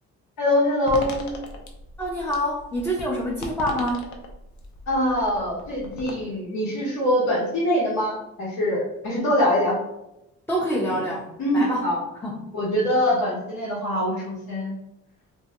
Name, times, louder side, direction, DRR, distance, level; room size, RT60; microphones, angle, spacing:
voice 1, 0.4-1.3 4.9-9.8 11.4-12.0 12.5-14.7, left 1 dB, 85° left, -8 dB, 0.9 m, -23 dB
sound 1, 0.9-6.1, left 3 dB, 70° left, 0.6 m, -38 dB
voice 2, 2.0-4.1 10.5-11.3 11.5-11.8 12.2-12.4, equal, 10° left, -4 dB, 0.4 m, -26 dB
2.3 x 2.1 x 2.8 m, 0.89 s
cardioid pair, 90°, 30 cm